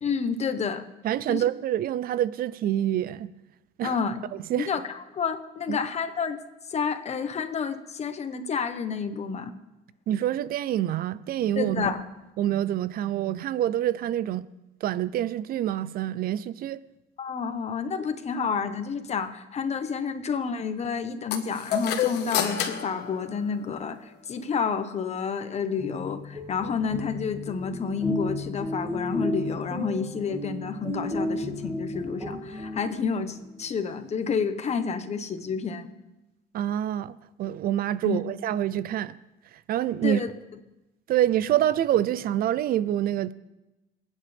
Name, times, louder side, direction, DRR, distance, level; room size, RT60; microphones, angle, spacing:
voice 1, 0.0-0.8 1.3-1.4 3.8-4.2 4.6-4.8 5.1-6.4 6.7-9.5 11.6-12.0 17.2-35.9 38.0-38.2 40.0-40.3, left 6 dB, 40° left, 1.3 m, -29 dB
voice 2, 1.0-3.3 3.8-4.0 4.5-4.7 5.7-5.8 10.1-11.9 12.4-14.5 14.8-16.8 36.5-39.2 39.5-40.2 41.1-43.3, right 11 dB, 60° right, 0.5 m, -26 dB
sound 1, 21.3-24.0, left 9 dB, 80° left, 1.5 m, -30 dB
sound 2, 25.7-33.3, left 1 dB, 15° right, 2.4 m, -33 dB
27.0 x 9.5 x 3.5 m
cardioid pair, 110°, 17 cm